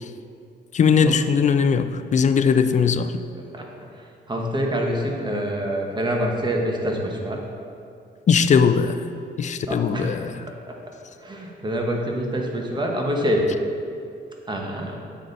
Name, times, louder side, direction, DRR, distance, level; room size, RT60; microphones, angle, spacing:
voice 1, 0.7-3.1 8.3-9.0 9.4-10.4, left 6 dB, 40° left, 10 dB, 0.4 m, -19 dB
voice 2, 3.3-3.7 3.9-7.4 9.7-10.8 11.2-13.5 14.5-15.0, equal, 20° right, 0 dB, 1.2 m, -26 dB
7.6 x 4.1 x 5.3 m, 2.5 s
cardioid pair, 90°, 20 cm